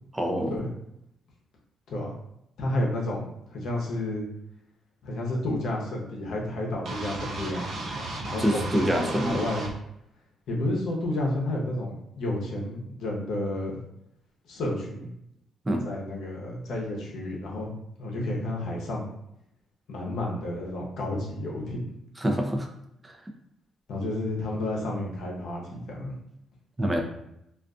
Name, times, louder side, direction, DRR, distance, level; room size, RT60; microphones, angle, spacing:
voice 1, 0.1-0.6 8.4-9.4 15.7-15.9 22.2-22.7 23.0-23.2 26.8-27.0, equal, 15° right, 3 dB, 0.4 m, -26 dB
voice 2, 2.6-4.3 5.0-9.7 10.5-13.8 14.5-15.1 15.8-17.7 18.0-19.0 19.9-21.8 23.9-26.1, left 1 dB, 75° left, -2 dB, 0.7 m, -31 dB
sound 1, 6.9-9.7, right 2 dB, 70° right, 0.5 m, -35 dB
2.4 x 2.4 x 2.3 m, 0.79 s
cardioid pair, 75°, 0 cm